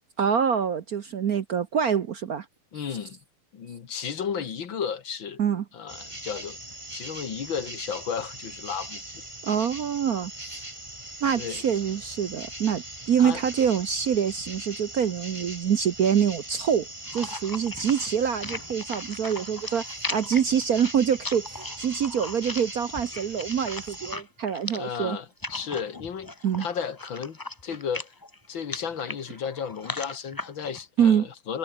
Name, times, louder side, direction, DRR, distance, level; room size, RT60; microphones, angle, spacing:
voice 1, 0.2-2.5 5.4-5.6 9.4-10.6 11.2-16.9 17.1-25.2 26.4-26.7 31.0-31.3, right 8 dB, 55° right, 1.2 m, -25 dB
voice 2, 2.7-3.2 3.5-5.4 5.7-6.6 6.9-9.2 11.4-11.6 13.2-13.4 24.7-26.3 26.6-28.1 28.5-31.6, left 7 dB, 65° left, 2.5 m, -33 dB
sound 1, 5.9-24.2, right 1 dB, 15° right, 3.6 m, -40 dB
sound 2, 17.1-30.8, left 2 dB, 15° left, 0.9 m, -38 dB
omnidirectional pair, 2.3 m